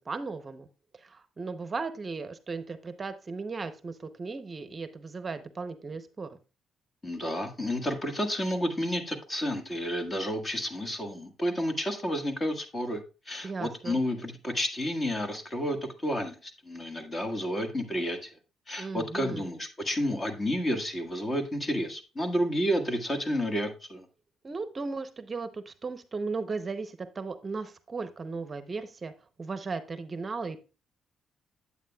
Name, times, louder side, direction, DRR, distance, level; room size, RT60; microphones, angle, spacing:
voice 1, 0.1-0.7 0.9-6.4 13.4-14.0 18.8-19.5 24.4-29.1 29.4-30.6, right 4 dB, 35° right, 11 dB, 0.7 m, -36 dB
voice 2, 7.0-13.0 13.3-18.3 18.7-24.1, equal, 25° left, 6 dB, 1.5 m, -31 dB
9.1 x 8.4 x 2.3 m, 0.32 s
cardioid pair, 90°, 0 cm